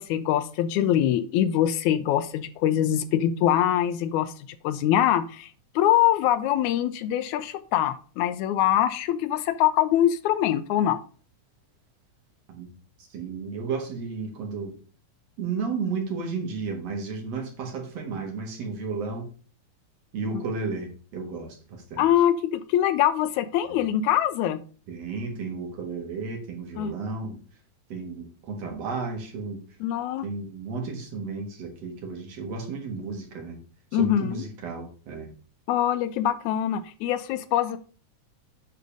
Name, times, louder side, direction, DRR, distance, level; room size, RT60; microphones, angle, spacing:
voice 1, 0.0-4.3 4.6-5.5 5.8-11.0 22.0-24.6 26.8-26.9 29.8-30.3 33.9-34.4 35.7-37.8, left 11 dB, 80° left, 13 dB, 1.9 m, -23 dB
voice 2, 13.1-14.8 15.4-19.3 20.1-22.1 23.7-23.8 24.9-27.4 27.9-29.6 30.2-33.6 33.9-35.3, right 4 dB, 60° right, 3 dB, 2.6 m, -33 dB
10.0 x 3.9 x 5.0 m, 0.40 s
omnidirectional pair, 3.4 m